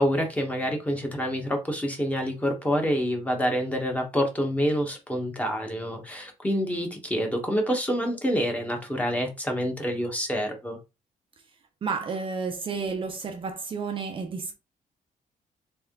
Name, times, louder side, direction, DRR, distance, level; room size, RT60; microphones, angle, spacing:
voice 1, 0.0-10.8, equal, 10° left, 1.1 m, -27 dB
voice 2, 11.8-14.5, right 5 dB, 40° right, 0.6 m, -31 dB
3.5 x 3.4 x 3.6 m
cardioid pair, 150°, 14 cm